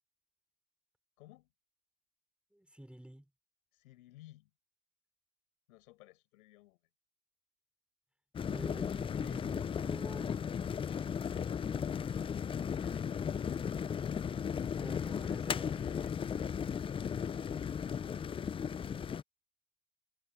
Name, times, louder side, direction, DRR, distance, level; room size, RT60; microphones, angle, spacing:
voice 1, 1.2-1.5 3.7-4.5 5.7-6.8 14.6-18.1, left 17 dB, 80° left, 4.8 m, -60 dB
voice 2, 2.5-3.2 8.5-10.3 14.4-15.8, equal, 5° right, 3.2 m, -49 dB
sound 1, 8.4-19.2, left 7 dB, 15° left, 0.3 m, -36 dB
hypercardioid pair, 90°, 42 cm